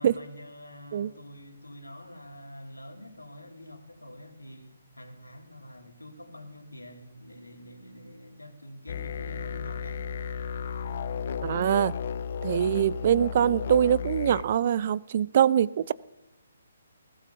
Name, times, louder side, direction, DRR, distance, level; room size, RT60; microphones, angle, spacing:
voice 1, 0.0-10.0, left 1 dB, 80° left, 2 dB, 2.6 m, -46 dB
sound 1, 8.9-14.4, left 6 dB, 45° left, 0.6 m, -34 dB
voice 2, 11.4-11.9 12.4-15.9, right 10 dB, 40° right, 21 dB, 0.4 m, -23 dB
20.5 x 16.5 x 2.9 m, 0.96 s
figure-of-eight pair, 135°, 0 cm